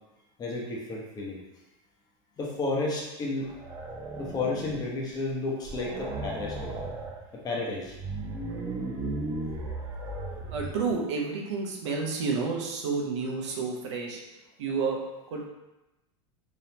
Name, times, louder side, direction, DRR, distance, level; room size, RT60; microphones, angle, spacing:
voice 1, 0.4-1.4 2.4-3.5 4.2-6.8 7.3-7.9, left 2 dB, 25° left, -3 dB, 1.0 m, -32 dB
sound 1, 3.4-4.9 5.3-5.4 5.6-7.2 7.8-10.9, right 2 dB, 25° right, 0.6 m, -36 dB
voice 2, 10.5-15.0 15.3-15.4, right 4 dB, 85° right, -1 dB, 0.8 m, -30 dB
3.6 x 3.4 x 2.9 m, 1.0 s
supercardioid pair, 135°, 15 cm